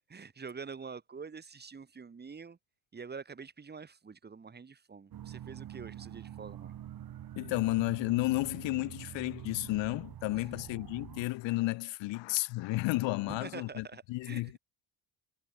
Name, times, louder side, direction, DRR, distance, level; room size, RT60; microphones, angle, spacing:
voice 1, 0.1-2.6 2.9-6.7 10.4-10.5 13.3-14.5, right 5 dB, 20° right, 2.7 m, -46 dB
sound 1, 5.1-11.3, right 11 dB, 50° right, 3.5 m, -46 dB
voice 2, 7.4-14.6, left 19 dB, 75° left, 0.7 m, -32 dB
cardioid pair, 170°, 45 cm